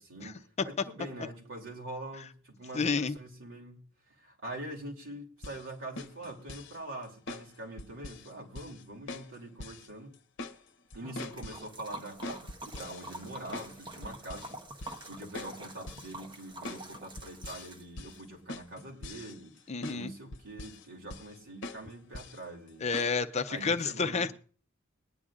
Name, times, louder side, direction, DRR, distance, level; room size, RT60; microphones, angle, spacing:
voice 1, 0.0-10.2 10.9-19.6 19.9-23.0 23.4-24.3, right 1 dB, 70° right, -1 dB, 2.9 m, -44 dB
voice 2, 2.7-3.2 19.7-20.1 22.8-24.3, left 4 dB, 35° left, 10 dB, 0.5 m, -30 dB
sound 1, 5.4-5.6 6.0-6.8 7.3-7.5 7.8-8.3 8.5-8.8 9.1-9.3 9.6-9.9 10.1-10.6 10.9-11.7 12.2-13.8 14.0-14.5 14.8-15.1 15.3-15.5 15.9-16.1 16.6-16.8 17.2-17.7 18.0-18.2 18.5-19.6 19.8-20.0 20.3-20.8 21.1-21.4 21.6-21.8 22.1-22.4 22.9-23.1, left 2 dB, 60° left, 0.8 m, -43 dB
Liquid, 11.0-18.2, right 2 dB, 25° right, 1.0 m, -46 dB
22.0 x 9.9 x 2.5 m, 0.41 s
head